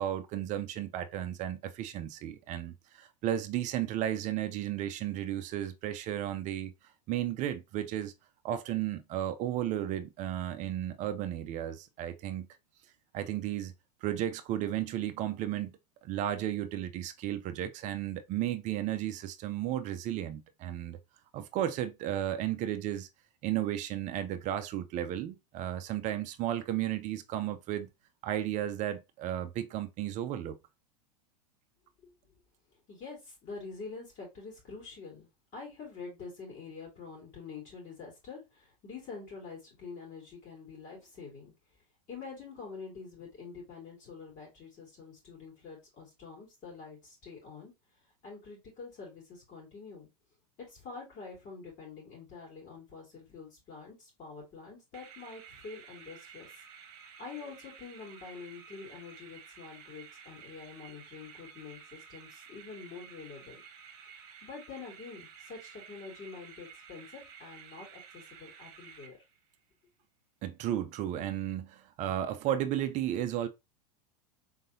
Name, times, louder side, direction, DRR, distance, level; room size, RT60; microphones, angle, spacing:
voice 1, 0.0-6.7 7.1-8.1 8.4-12.5 13.1-13.7 14.0-15.7 16.0-21.0 21.3-23.1 23.4-27.9 28.2-30.6 70.4-73.5, right 11 dB, 35° right, 0.6 m, -34 dB
voice 2, 32.9-41.5 42.1-47.7 48.2-50.1 50.7-56.5 57.2-63.6 64.4-69.2, left 4 dB, 40° left, 2.9 m, -46 dB
sound 1, 54.9-69.6, right 7 dB, 55° right, 1.2 m, -52 dB
3.9 x 3.7 x 2.7 m
hypercardioid pair, 115°, 20 cm